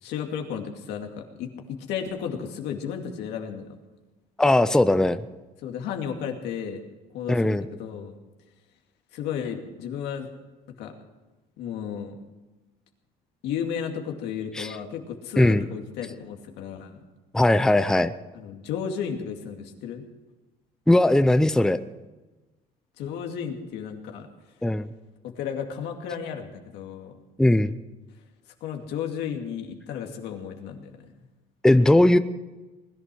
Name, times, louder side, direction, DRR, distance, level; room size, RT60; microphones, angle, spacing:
voice 1, 0.0-3.7 5.6-6.8 7.1-8.1 9.1-10.3 10.8-10.9 11.6-12.2 13.4-17.0 18.3-20.0 23.0-24.3 25.2-27.1 28.6-30.9, left 7 dB, 85° left, 3 dB, 2.4 m, -33 dB
voice 2, 4.4-5.2 7.3-7.6 14.6-14.7 15.4-15.6 17.3-18.1 20.9-21.8 24.6-24.9 27.4-27.8 31.6-32.2, left 1 dB, 5° left, 11 dB, 0.6 m, -19 dB
20.5 x 11.5 x 6.2 m, 1.1 s
cardioid pair, 110°, 17 cm